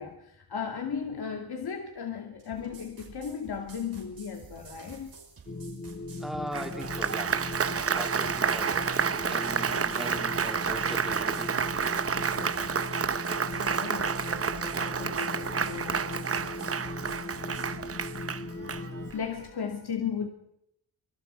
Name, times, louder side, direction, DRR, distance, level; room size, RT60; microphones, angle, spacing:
voice 1, 0.0-5.2 9.7-9.8 13.6-16.3 18.4-20.3, left 7 dB, 75° left, 2.6 m, -36 dB
sound 1, 2.4-18.2, right 4 dB, 60° right, 6.2 m, -51 dB
sound 2, 5.5-19.1, left 2 dB, 30° left, 1.5 m, -39 dB
voice 2, 6.2-7.4 7.9-12.8 13.5-13.7, equal, ahead, 2.9 m, -41 dB
Applause, 6.5-19.3, right 6 dB, 35° right, 0.7 m, -30 dB
26.0 x 25.0 x 4.7 m
wide cardioid pair, 175°, 39 cm